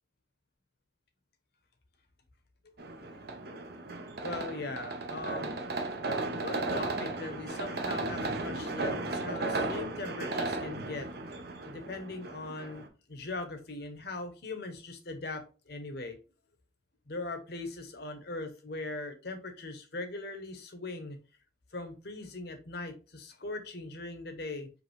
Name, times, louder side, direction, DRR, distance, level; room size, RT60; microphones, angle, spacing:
voice 1, 2.6-3.0 4.2-5.5 6.3-11.1 11.6-16.2 17.1-21.2 21.7-24.7, left 2 dB, 55° left, 7 dB, 0.8 m, -40 dB
sound 1, 2.8-12.9, right 2 dB, 55° right, 0.7 m, -35 dB
5.2 x 2.6 x 3.1 m, 0.33 s
head